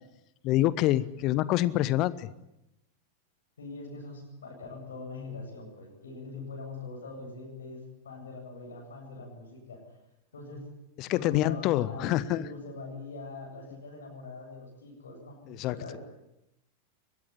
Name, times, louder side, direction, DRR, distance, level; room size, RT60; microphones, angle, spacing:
voice 1, 0.4-2.3 11.0-12.5 15.5-15.8, left 15 dB, 40° left, 19 dB, 1.0 m, -26 dB
voice 2, 3.6-9.8 10.3-10.7 11.1-16.0, left 3 dB, 65° left, 1 dB, 8.0 m, -43 dB
23.5 x 20.5 x 9.8 m, 0.86 s
figure-of-eight pair, 90°, 0 cm